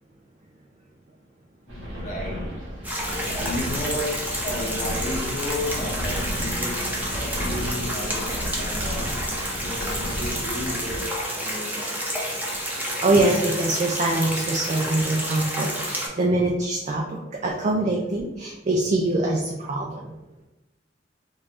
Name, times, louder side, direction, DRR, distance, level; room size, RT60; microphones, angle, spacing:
voice 1, 1.7-2.5 3.3-9.2 9.6-12.4, left 1 dB, 40° left, -3 dB, 0.8 m, -33 dB
sound 1, 1.7-11.0, equal, 90° right, 1.5 m, -33 dB
sound 2, 2.8-16.1, equal, 10° right, 0.7 m, -30 dB
voice 2, 12.8-20.1, right 2 dB, 35° right, -2 dB, 0.4 m, -24 dB
3.4 x 2.6 x 3.4 m, 1.0 s
head